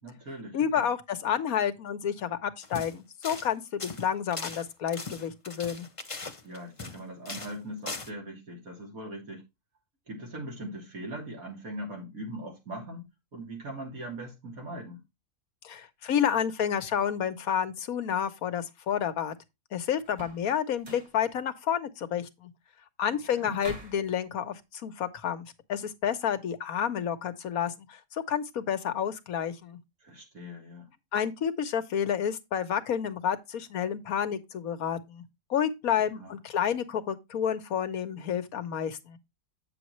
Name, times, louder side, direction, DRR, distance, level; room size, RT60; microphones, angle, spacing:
voice 1, 0.0-0.9 6.4-9.4 10.1-15.0 23.3-23.6 30.0-30.9 36.0-36.3, right 1 dB, 80° right, 3.5 m, -41 dB
voice 2, 0.5-5.9 15.6-19.3 19.7-22.5 23.0-29.8 31.1-35.2 35.5-39.2, left 8 dB, 90° left, 1.4 m, -30 dB
sound 1, 2.6-2.9 3.2-3.5 3.8-7.0 7.3-7.6 7.9-8.1, left 3 dB, 25° left, 1.0 m, -39 dB
sound 2, 20.1-20.5 20.8-21.2 23.6-24.1, equal, 30° right, 1.9 m, -43 dB
9.0 x 6.9 x 3.1 m
omnidirectional pair, 1.5 m